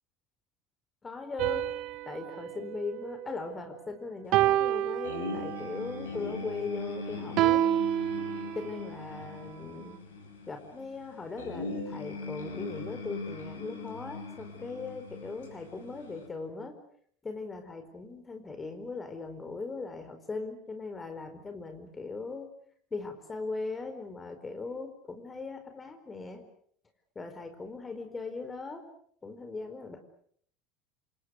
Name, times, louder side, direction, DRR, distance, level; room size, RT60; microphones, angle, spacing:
voice 1, 1.0-1.7 2.1-7.6 8.5-10.0 10.5-16.7 17.2-22.5 22.9-26.4 27.1-28.8 29.2-30.0, left 4 dB, 20° left, 7 dB, 4.7 m, -39 dB
sound 1, 1.4-3.8 4.3-5.8 7.4-8.9, right 13 dB, 50° right, 1.2 m, -29 dB
sound 2, 5.0-16.3, left 3 dB, 75° left, 5.4 m, -40 dB
28.5 x 27.5 x 6.5 m, 0.63 s
figure-of-eight pair, 70°, 0 cm